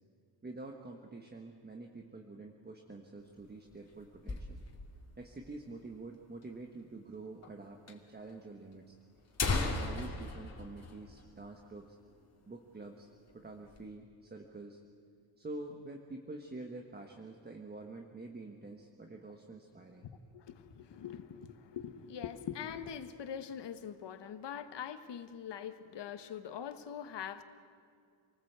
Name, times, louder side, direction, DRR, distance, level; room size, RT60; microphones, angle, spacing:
voice 1, 0.4-4.6 5.2-9.0 9.5-12.0 12.5-13.1 13.3-14.8 15.4-20.1, right 2 dB, 20° right, 3 dB, 1.3 m, -47 dB
sound 1, 3.2-5.0 5.3-5.4 5.6-5.7 6.4-6.5 7.4-7.5 7.9-8.0 8.7-8.8 9.2-11.8 12.1-12.2 12.6-12.9 13.3-13.9, left 3 dB, 30° left, 2.6 m, -37 dB
voice 2, 20.3-27.4, left 8 dB, 55° left, 10 dB, 1.4 m, -43 dB
27.5 x 19.5 x 8.1 m, 2.3 s
wide cardioid pair, 160°, 49 cm